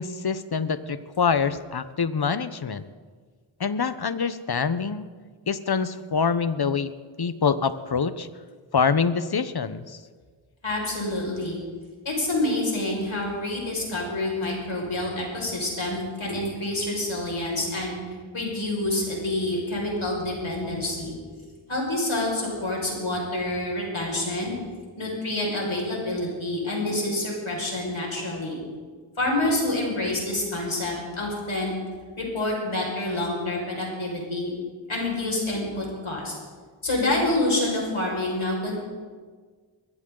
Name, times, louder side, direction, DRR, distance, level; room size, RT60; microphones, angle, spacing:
voice 1, 0.0-2.8 3.6-5.1 5.5-6.9 7.2-8.3 8.7-10.0, left 5 dB, 50° left, 14 dB, 0.8 m, -25 dB
voice 2, 10.6-11.6 12.1-18.0 18.3-21.2 21.7-24.5 25.0-28.6 29.2-31.7 32.2-34.5 34.9-36.3 36.8-38.7, left 1 dB, 75° left, -2 dB, 5.4 m, -27 dB
21.5 x 15.5 x 3.8 m, 1.5 s
wide cardioid pair, 45°, 48 cm